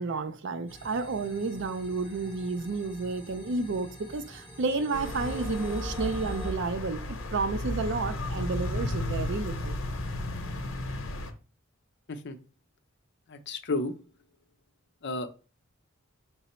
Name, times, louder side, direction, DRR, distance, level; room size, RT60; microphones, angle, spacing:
voice 1, 0.0-9.8, right 3 dB, 60° right, 0.5 m, -31 dB
sound 1, 0.7-6.5, equal, 15° right, 1.2 m, -41 dB
sound 2, 4.9-11.3, left 1 dB, 85° left, 0.7 m, -34 dB
voice 2, 13.3-13.9 15.0-15.3, left 2 dB, 60° left, 0.6 m, -32 dB
5.7 x 2.0 x 4.2 m
head